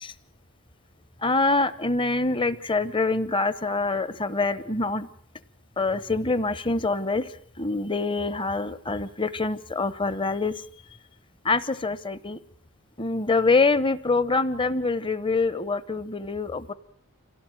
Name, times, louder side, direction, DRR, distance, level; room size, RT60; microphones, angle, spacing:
voice 1, 1.2-5.1 5.8-7.3 7.6-10.5 11.4-12.4 13.0-16.7, left 3 dB, 20° left, 15 dB, 0.9 m, -25 dB
26.5 x 17.5 x 9.0 m, 0.64 s
head